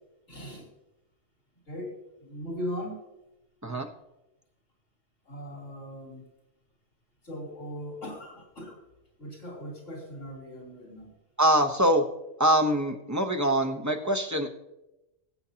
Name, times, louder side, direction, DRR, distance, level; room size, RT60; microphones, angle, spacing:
voice 1, 0.3-0.7 1.7-3.0 5.3-6.3 7.2-8.8 9.2-11.1, equal, 80° left, -2 dB, 3.8 m, -39 dB
voice 2, 11.4-12.1 12.4-14.5, right 1 dB, 15° right, 3 dB, 0.8 m, -24 dB
19.5 x 8.1 x 2.9 m, 0.94 s
omnidirectional pair, 1.3 m